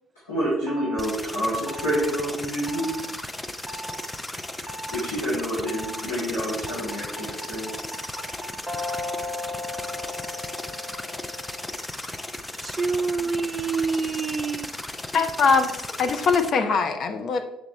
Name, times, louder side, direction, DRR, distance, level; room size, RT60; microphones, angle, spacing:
voice 1, 0.3-2.9 4.9-7.7, equal, 90° left, -13 dB, 2.8 m, -28 dB
sound 1, 0.7-1.0 1.7-2.0 2.7-3.0 3.7-4.0 4.7-5.0 5.7-6.0 6.7-11.7, left 1 dB, 5° right, 1.1 m, -36 dB
sound 2, 1.0-16.5, left 1 dB, 10° left, 0.6 m, -36 dB
voice 2, 12.6-14.7, right 5 dB, 30° right, 13 dB, 0.4 m, -26 dB
voice 3, 15.1-15.7 16.0-17.4, left 5 dB, 45° left, 7 dB, 0.8 m, -21 dB
8.2 x 6.1 x 3.3 m, 0.91 s
figure-of-eight pair, 55°, 0 cm